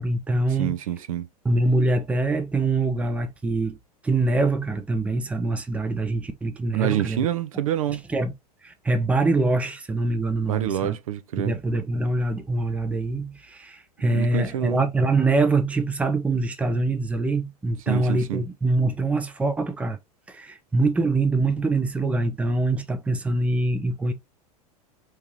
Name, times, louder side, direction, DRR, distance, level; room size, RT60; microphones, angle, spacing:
voice 1, 0.0-0.8 1.4-3.8 4.0-7.3 8.1-8.3 8.6-11.0 11.4-20.0 20.3-24.1, right 2 dB, 5° right, 0.5 m, -24 dB
voice 2, 0.6-1.3 6.7-8.0 10.5-11.6 14.1-14.8 17.9-18.4, right 11 dB, 60° right, 0.5 m, -27 dB
4.5 x 2.9 x 3.1 m
figure-of-eight pair, 90°, 20 cm